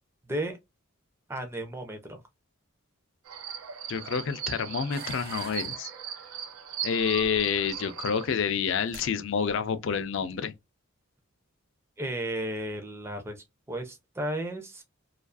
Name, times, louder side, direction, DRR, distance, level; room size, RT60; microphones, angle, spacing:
voice 1, 0.3-0.6 1.3-2.2 12.0-14.8, right 1 dB, 10° right, 0.5 m, -34 dB
sound 1, 3.3-8.3, right 8 dB, 85° right, 0.5 m, -38 dB
voice 2, 3.9-5.9 6.8-10.5, left 6 dB, 60° left, 0.4 m, -28 dB
sound 2, 4.9-5.8 7.1-7.8 8.6-8.7 8.9-9.1 9.5-9.8, right 3 dB, 45° right, 0.7 m, -44 dB
2.4 x 2.3 x 2.3 m
head